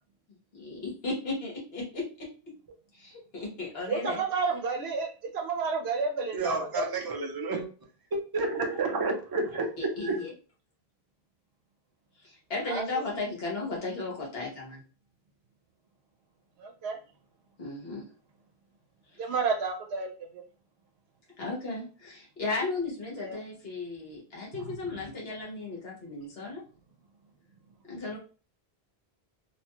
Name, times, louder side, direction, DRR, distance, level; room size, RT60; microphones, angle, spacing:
voice 1, 0.5-2.3 2.9-4.2 9.8-10.3 12.2-14.8 17.6-18.0 19.1-19.3 21.4-26.6 27.9-28.2, left 3 dB, 75° left, 1.3 m, -35 dB
voice 2, 3.9-6.9 12.7-12.8 16.6-17.0 19.2-20.1 23.2-23.4, right 4 dB, 80° right, 0.8 m, -30 dB
voice 3, 6.3-7.7 8.1-9.7 10.0-10.2, right 3 dB, 25° right, 0.5 m, -30 dB
2.8 x 2.2 x 2.9 m
omnidirectional pair, 1.0 m